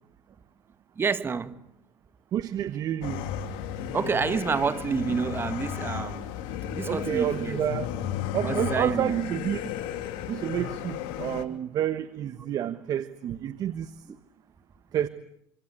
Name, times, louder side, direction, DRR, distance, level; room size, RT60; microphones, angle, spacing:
voice 1, 1.0-1.6 3.9-6.3 6.7-7.6 8.4-9.1 12.4-12.5 14.1-14.2, right 5 dB, 30° right, 1.8 m, -28 dB
voice 2, 2.3-3.3 6.9-7.9 8.3-9.7 10.3-13.9 14.9-15.1, right 10 dB, 55° right, 1.3 m, -29 dB
sound 1, 3.0-11.4, left 9 dB, 75° left, 2.9 m, -34 dB
26.5 x 25.5 x 8.3 m
supercardioid pair, 85°, 8 cm